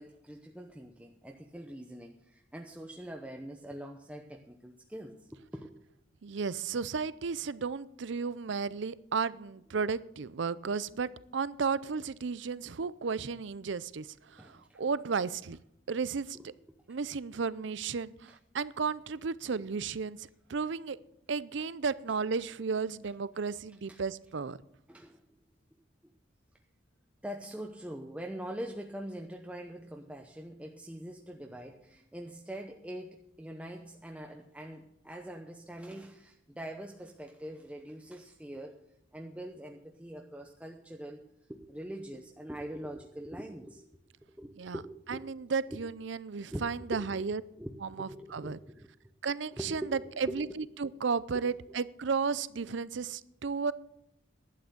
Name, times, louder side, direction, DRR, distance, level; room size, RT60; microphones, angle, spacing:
voice 1, 0.0-5.7 14.4-14.8 16.3-16.4 21.6-21.7 23.9-24.0 24.9-25.3 27.2-38.8 39.1-41.2 41.5-43.8 44.2-45.3 45.7-45.8 46.5-46.6 46.9-47.2 47.6-48.9 49.6-50.6 51.3-51.8, right 1 dB, 5° right, 1 dB, 0.7 m, -43 dB
voice 2, 6.2-15.6 15.9-16.5 16.9-21.0 21.3-24.6 44.6-44.8 45.1-47.4 47.8-48.6 49.2-49.8 50.2-53.7, right 5 dB, 65° right, 18 dB, 0.5 m, -34 dB
11.5 x 8.7 x 6.8 m, 0.77 s
head